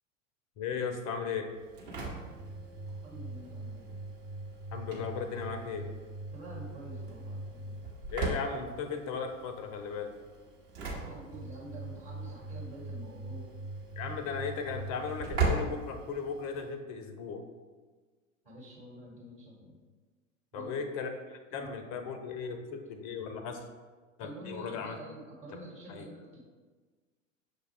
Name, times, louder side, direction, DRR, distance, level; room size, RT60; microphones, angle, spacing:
voice 1, 0.6-1.5 4.7-5.9 8.1-10.1 14.0-17.4 20.5-23.6 24.2-25.0 25.9-26.1, left 5 dB, 30° left, 6 dB, 0.4 m, -36 dB
Engine / Slam, 1.5-16.7, right 3 dB, 50° right, 1.1 m, -38 dB
voice 2, 3.0-3.9 6.3-7.8 10.9-13.5 18.4-19.8 20.5-20.7 21.5-21.9 22.4-22.5 24.2-26.4, right 1 dB, 35° right, -5 dB, 1.2 m, -48 dB
6.3 x 2.3 x 3.2 m, 1.4 s
figure-of-eight pair, 90°, 39 cm